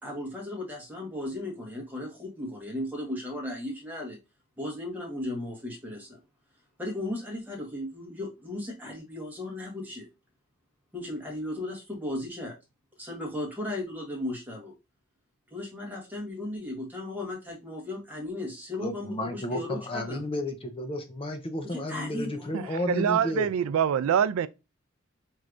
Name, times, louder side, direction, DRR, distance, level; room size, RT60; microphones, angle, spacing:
voice 1, 0.0-4.2 4.6-6.2 6.8-10.1 10.9-12.5 13.0-14.7 15.5-20.2 21.6-22.7, left 1 dB, 10° right, 1.4 m, -36 dB
voice 2, 18.8-23.5, left 1 dB, 25° left, 0.6 m, -32 dB
voice 3, 22.9-24.5, right 8 dB, 85° right, 0.3 m, -24 dB
4.6 x 3.2 x 2.5 m
head